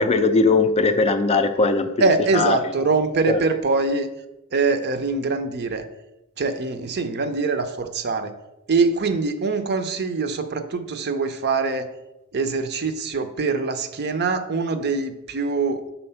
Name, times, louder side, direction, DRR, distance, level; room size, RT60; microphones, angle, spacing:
voice 1, 0.0-1.9 2.3-2.6 3.3-3.4, left 3 dB, 30° left, 8 dB, 0.4 m, -19 dB
voice 2, 2.0-4.1 4.5-5.8 6.4-8.3 8.7-11.9 12.3-15.8, right 4 dB, 50° right, 9 dB, 0.6 m, -23 dB
5.6 x 4.3 x 5.6 m, 0.93 s
head